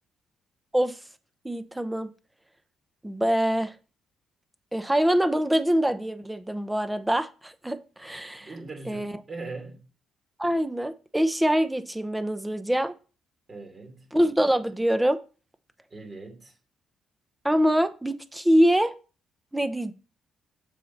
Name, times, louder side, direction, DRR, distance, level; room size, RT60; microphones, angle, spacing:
voice 1, 1.4-2.1 3.0-3.7 4.7-8.5 8.9-9.1 10.4-12.9 14.1-15.2 17.4-18.9 19.5-19.9, equal, 10° right, 0.9 m, -24 dB
voice 2, 8.4-9.8 13.5-14.1 15.9-16.5, right 3 dB, 35° right, 3.1 m, -40 dB
7.4 x 6.7 x 4.2 m
cardioid pair, 90°, 0 cm